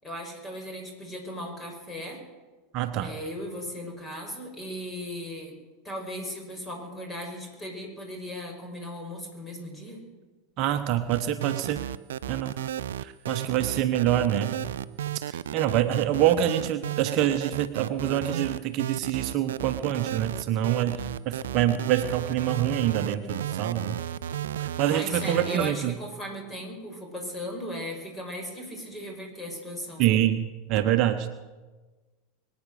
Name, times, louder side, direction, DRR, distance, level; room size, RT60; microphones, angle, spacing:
voice 1, 0.0-2.2 3.0-5.5 5.8-10.0 24.4-30.2, equal, 20° left, 2 dB, 5.7 m, -37 dB
voice 2, 2.7-3.1 10.6-11.8 12.3-12.5 13.0-14.6 15.1-24.0 24.8-25.9 30.0-31.3, right 11 dB, 45° right, 8 dB, 1.0 m, -26 dB
sound 1, 11.1-25.7, right 10 dB, 70° right, 0.5 m, -33 dB
23.0 x 9.4 x 6.7 m, 1.3 s
figure-of-eight pair, 85°, 0 cm